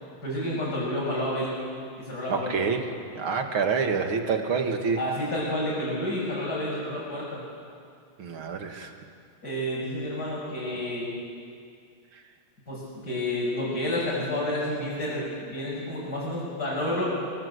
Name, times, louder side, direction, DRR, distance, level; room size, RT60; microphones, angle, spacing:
voice 1, 0.2-1.5 2.0-2.5 5.0-7.4 9.4-11.1 12.7-17.1, left 1 dB, 45° left, -8 dB, 7.2 m, -30 dB
voice 2, 2.3-2.9 3.1-5.0 8.2-8.9, right 5 dB, 65° right, 4 dB, 2.8 m, -27 dB
25.0 x 24.0 x 8.3 m, 2.2 s
omnidirectional pair, 2.4 m